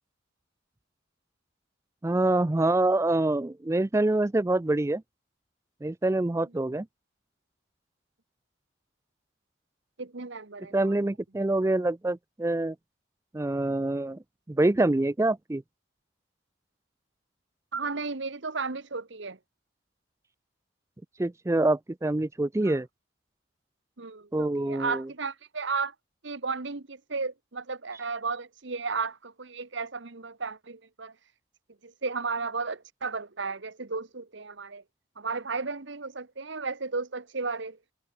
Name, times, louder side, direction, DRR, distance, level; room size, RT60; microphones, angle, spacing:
voice 1, 2.0-5.0 5.8-6.9 10.7-12.8 13.3-14.2 14.5-15.6 21.2-22.9 24.3-25.1, right 2 dB, 15° right, 0.3 m, -25 dB
voice 2, 10.0-10.9 17.7-19.4 22.6-22.8 24.0-25.9 26.2-31.1 31.8-34.8 35.2-37.8, right 4 dB, 65° right, 1.2 m, -34 dB
head